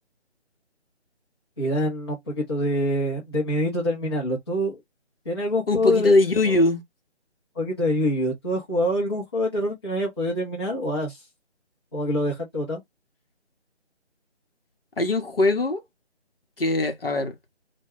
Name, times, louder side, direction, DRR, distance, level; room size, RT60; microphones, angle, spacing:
voice 1, 1.6-4.8 5.2-6.1 6.5-6.6 7.5-11.2 11.9-12.8, equal, 20° left, 0.7 m, -25 dB
voice 2, 5.7-6.8 15.0-15.8 16.6-17.3, left 2 dB, 55° left, 0.9 m, -21 dB
2.2 x 2.2 x 3.5 m
figure-of-eight pair, 155°, 35 cm